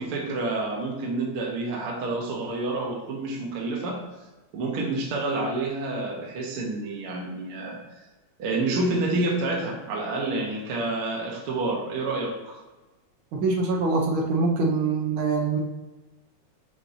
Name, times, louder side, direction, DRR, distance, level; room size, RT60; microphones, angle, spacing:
voice 1, 0.0-4.0 4.5-7.8 8.4-12.6, right 2 dB, 60° right, -2 dB, 1.7 m, -28 dB
voice 2, 13.3-15.6, right 3 dB, 85° right, 0 dB, 1.1 m, -24 dB
6.3 x 5.9 x 2.7 m, 1.1 s
omnidirectional pair, 3.4 m